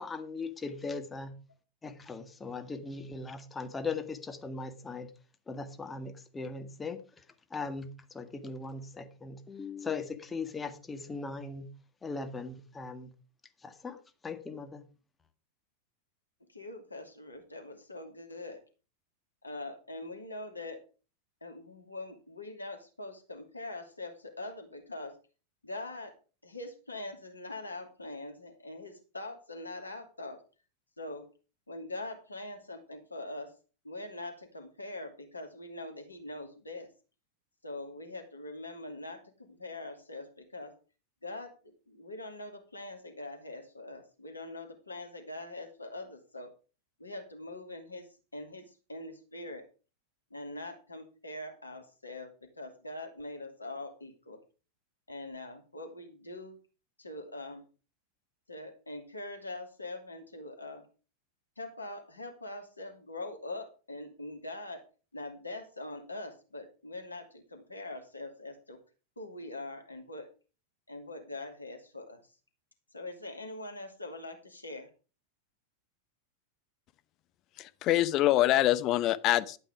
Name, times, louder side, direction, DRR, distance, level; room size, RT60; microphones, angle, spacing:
voice 1, 0.0-1.4 1.8-5.1 5.5-7.2 7.5-13.1 13.6-14.8, left 4 dB, 15° left, 7 dB, 1.8 m, -39 dB
voice 2, 16.5-18.6 19.4-20.8 21.4-25.2 25.6-26.1 26.4-30.4 31.0-31.2 31.7-33.5 33.8-36.9 37.6-40.7 41.2-46.5 47.0-48.1 48.3-49.6 50.3-54.4 55.1-56.6 57.0-57.6 58.5-60.9 61.6-64.8 65.1-68.8 69.2-70.3 70.9-72.3 72.9-74.9, left 2 dB, 80° left, 5 dB, 2.6 m, -43 dB
voice 3, 77.6-79.6, left 15 dB, 35° left, 13 dB, 0.9 m, -25 dB
12.5 x 9.0 x 4.9 m, 0.35 s
figure-of-eight pair, 90°, 0 cm